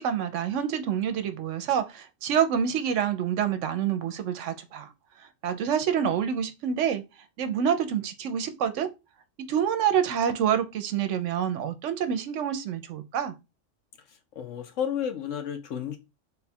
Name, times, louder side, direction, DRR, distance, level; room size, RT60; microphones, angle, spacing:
voice 1, 0.0-4.9 5.4-7.0 7.4-8.9 9.5-13.3, right 8 dB, 75° right, 0.9 m, -27 dB
voice 2, 14.4-16.0, left 8 dB, 75° left, 1.1 m, -31 dB
3.8 x 2.3 x 4.1 m
omnidirectional pair, 1.3 m